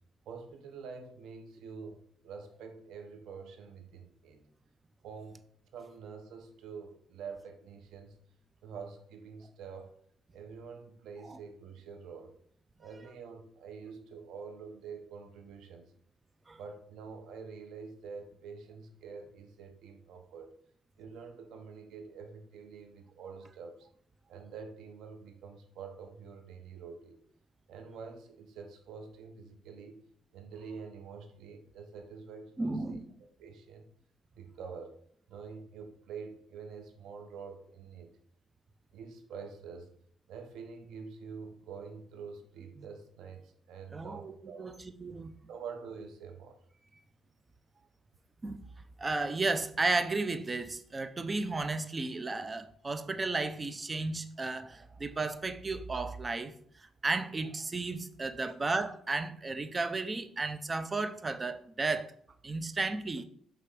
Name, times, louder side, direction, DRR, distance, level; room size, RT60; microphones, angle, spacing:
voice 1, 0.3-4.4 5.0-5.4 5.7-8.2 8.6-9.9 10.3-12.3 12.8-15.9 16.6-20.5 21.0-23.8 24.3-27.2 27.7-30.0 30.3-32.8 33.4-33.9 34.4-35.0 35.3-38.1 38.9-39.9 40.3-44.7 45.5-46.6 58.4-58.5, right 5 dB, 80° right, 0.9 m, -46 dB
voice 2, 32.6-33.1 43.9-45.3 48.4-48.6 49.0-56.5 57.0-62.1 62.4-63.2, right 3 dB, 25° right, 0.6 m, -33 dB
5.9 x 3.6 x 4.9 m
cardioid pair, 90°, 0 cm